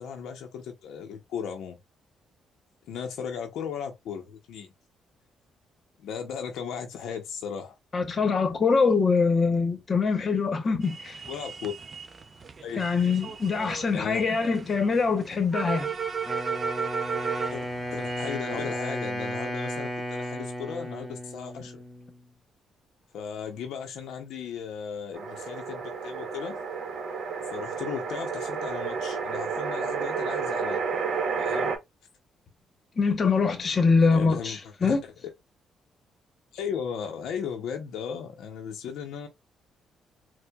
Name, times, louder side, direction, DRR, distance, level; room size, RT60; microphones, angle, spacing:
voice 1, 0.0-1.8 2.9-4.7 6.0-7.8 11.3-11.7 12.6-12.8 13.9-14.2 17.5-21.8 23.1-26.6 27.5-30.8 31.4-31.7 34.1-35.1 36.5-39.3, left 7 dB, 80° left, 0.6 m, -36 dB
voice 2, 7.9-11.1 12.8-15.9 33.0-35.0, left 4 dB, 40° left, 0.8 m, -24 dB
sound 1, 10.8-18.4, right 6 dB, 35° right, 0.5 m, -35 dB
Wind instrument woodwind instrument, 16.3-22.2, equal, 15° left, 1.4 m, -34 dB
sound 2, 25.1-31.8, right 5 dB, 60° right, 0.8 m, -31 dB
4.4 x 2.1 x 2.2 m
cardioid pair, 90°, 0 cm